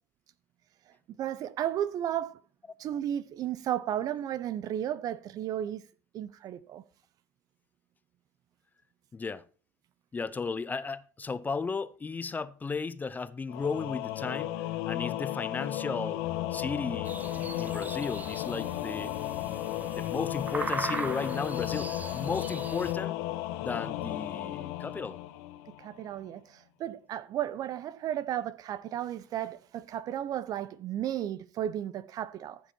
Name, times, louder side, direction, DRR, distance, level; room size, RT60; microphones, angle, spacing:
voice 1, 1.2-2.4 2.8-5.8 6.1-6.8 25.8-32.6, right 11 dB, 50° right, 0.8 m, -34 dB
voice 2, 9.1-9.4 10.1-16.2 16.5-19.1 19.9-23.2 23.6-25.2, left 4 dB, 20° left, 0.7 m, -35 dB
Singing / Musical instrument, 13.5-26.0, left 14 dB, 70° left, 1.3 m, -34 dB
sound 1, 17.0-22.9, right 3 dB, 20° right, 1.2 m, -39 dB
14.5 x 7.1 x 4.4 m
hypercardioid pair, 85°, 8 cm